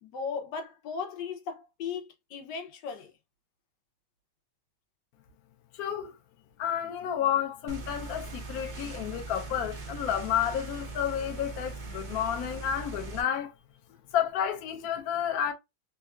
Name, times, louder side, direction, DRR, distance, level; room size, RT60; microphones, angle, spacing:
voice 1, 0.0-3.1 13.9-14.0, left 6 dB, 85° left, 1.5 m, -37 dB
voice 2, 5.7-6.1 6.6-13.5 14.1-15.5, left 9 dB, 65° left, 1.1 m, -30 dB
sound 1, 7.7-13.2, right 3 dB, 55° right, 0.5 m, -40 dB
3.9 x 2.4 x 2.3 m
omnidirectional pair, 1.8 m